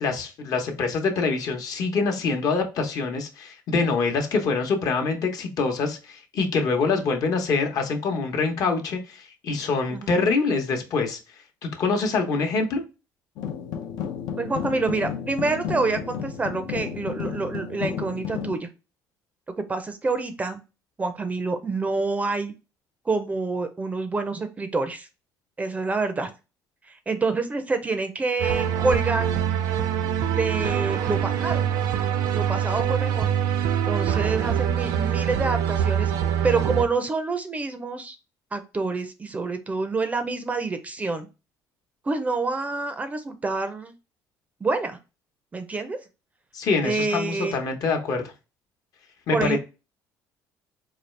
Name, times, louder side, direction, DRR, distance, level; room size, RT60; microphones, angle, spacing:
voice 1, 0.0-11.2 11.6-12.8 46.5-48.2 49.3-49.6, left 4 dB, 55° left, 0.9 m, -25 dB
sound 1, 13.4-18.6, left 7 dB, 75° left, 0.6 m, -32 dB
voice 2, 14.4-18.7 19.6-20.6 21.0-22.5 23.1-25.1 25.6-26.3 26.9-29.3 30.3-31.6 32.3-33.3 33.9-36.1 36.4-38.2 38.5-41.3 42.0-43.9 44.6-45.0 45.5-46.0 46.8-47.5 49.3-49.6, right 3 dB, 20° right, 0.5 m, -27 dB
sound 2, 28.4-36.9, right 9 dB, 75° right, 0.5 m, -24 dB
4.2 x 2.3 x 3.2 m
cardioid pair, 125°, 7 cm